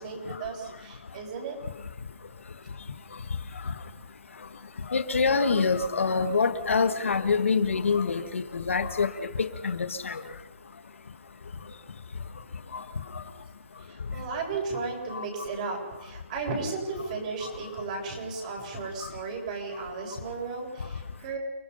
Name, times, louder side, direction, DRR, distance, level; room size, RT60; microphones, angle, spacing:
voice 1, 0.0-1.6 13.8-21.4, right 4 dB, 35° right, 0 dB, 7.7 m, -35 dB
voice 2, 4.9-9.1 9.4-10.2 15.1-15.2, left 5 dB, 85° left, 10 dB, 1.8 m, -25 dB
29.5 x 20.0 x 5.7 m, 1.1 s
hypercardioid pair, 160°, 7 cm